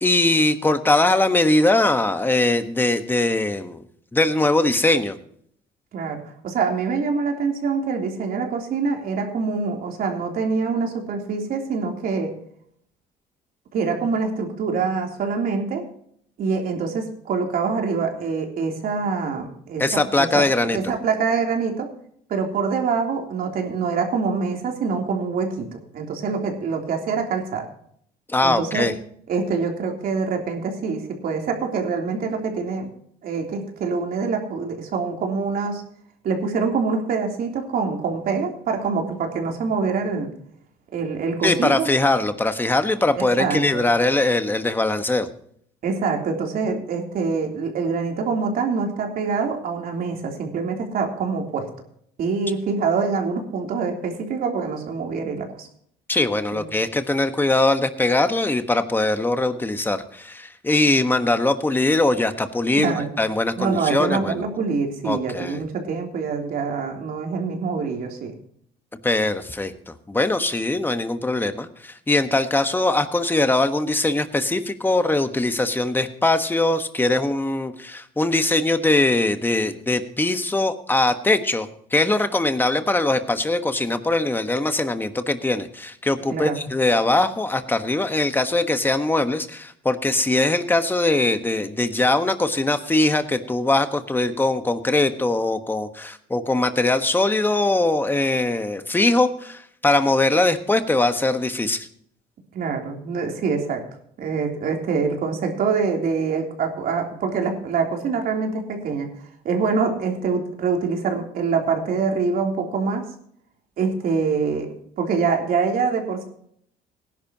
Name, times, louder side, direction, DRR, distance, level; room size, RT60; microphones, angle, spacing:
voice 1, 0.0-3.8 4.1-5.2 19.8-20.8 28.3-28.9 41.4-45.3 56.1-64.4 65.0-65.6 69.0-101.9, left 2 dB, 10° left, 8 dB, 1.3 m, -21 dB
voice 2, 5.9-12.3 13.7-15.8 16.4-19.8 20.2-20.4 20.7-21.9 22.3-27.7 28.4-28.9 29.3-32.9 33.2-35.8 36.2-40.3 40.9-41.9 43.1-43.8 45.8-51.7 52.2-55.7 56.5-56.6 62.8-63.1 63.6-68.3 86.3-86.6 102.5-103.8 104.2-109.1 109.5-113.1 113.8-114.7 115.0-116.2, right 5 dB, 60° right, 2 dB, 3.3 m, -25 dB
18.5 x 11.0 x 2.9 m, 0.65 s
cardioid pair, 110°, 17 cm